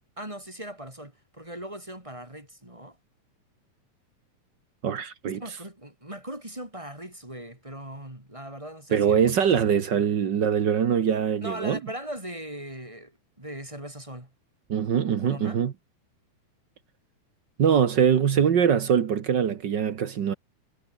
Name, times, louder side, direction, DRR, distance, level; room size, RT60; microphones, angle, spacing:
voice 1, 0.2-3.0 5.3-9.3 9.6-10.0 11.4-14.3 15.1-15.6, right 1 dB, 10° right, 4.4 m, -39 dB
voice 2, 4.8-5.4 8.9-11.8 14.7-15.7 17.6-20.3, right 8 dB, 55° right, 1.2 m, -23 dB
omnidirectional pair, 3.7 m